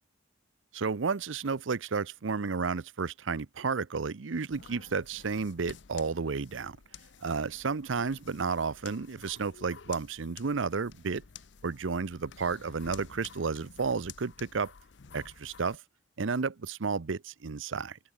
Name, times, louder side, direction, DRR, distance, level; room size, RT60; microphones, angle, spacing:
voice 1, 0.7-6.8 7.2-11.2 11.6-14.7 15.1-15.8 16.2-18.0, right 5 dB, 85° right, 0.7 m, -32 dB
sound 1, 4.5-15.8, left 7 dB, 65° left, 0.7 m, -52 dB
open air
head